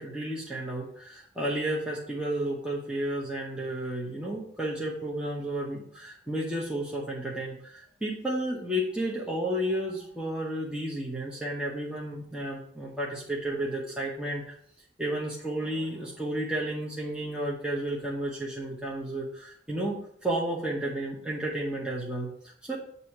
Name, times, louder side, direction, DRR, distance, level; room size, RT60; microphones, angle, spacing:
voice 1, 0.0-14.5 15.0-22.8, right 1 dB, 5° right, -4 dB, 0.9 m, -32 dB
8.1 x 2.7 x 5.7 m, 0.65 s
head